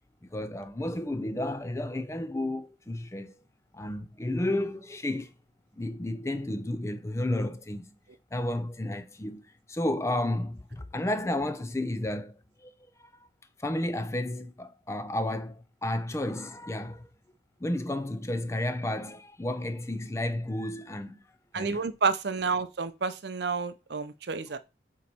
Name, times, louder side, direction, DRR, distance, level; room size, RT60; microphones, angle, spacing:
voice 1, 0.2-3.4 3.7-5.3 5.8-7.9 8.3-9.4 9.7-12.3 12.6-12.7 13.0-13.1 13.6-17.1 17.6-21.2 21.5-21.9, left 1 dB, 15° left, 0.4 m, -32 dB
voice 2, 21.5-24.6, right 4 dB, 60° right, 0.6 m, -30 dB
8.3 x 3.2 x 4.3 m
head